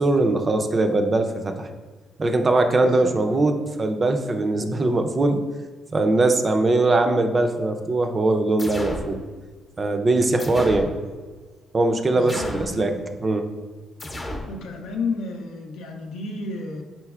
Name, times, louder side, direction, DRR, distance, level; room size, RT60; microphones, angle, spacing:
voice 1, 0.0-1.7 2.2-5.4 5.9-9.2 9.8-10.9 11.7-12.9 13.2-13.5, right 2 dB, 30° right, 6 dB, 0.4 m, -21 dB
voice 2, 2.8-3.2 10.5-10.8 12.1-12.9 14.5-16.8, left 3 dB, 85° left, 3 dB, 0.5 m, -32 dB
sound 1, 8.6-9.1 10.4-10.9 12.3-12.8 14.0-14.5, left 1 dB, 20° left, 0.6 m, -32 dB
4.4 x 4.0 x 2.3 m, 1.4 s
cardioid pair, 90°, 0 cm